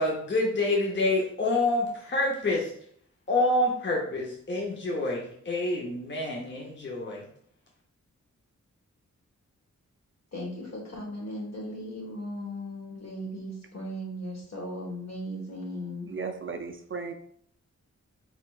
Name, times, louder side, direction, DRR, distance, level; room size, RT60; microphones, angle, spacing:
voice 1, 0.0-2.7 3.3-7.2, left 2 dB, 35° left, -2 dB, 0.7 m, -27 dB
voice 2, 10.3-16.1, equal, 60° left, -3 dB, 1.5 m, -37 dB
voice 3, 16.1-17.1, right 4 dB, 40° right, 6 dB, 0.4 m, -35 dB
4.3 x 4.1 x 2.4 m, 0.64 s
wide cardioid pair, 100°, 31 cm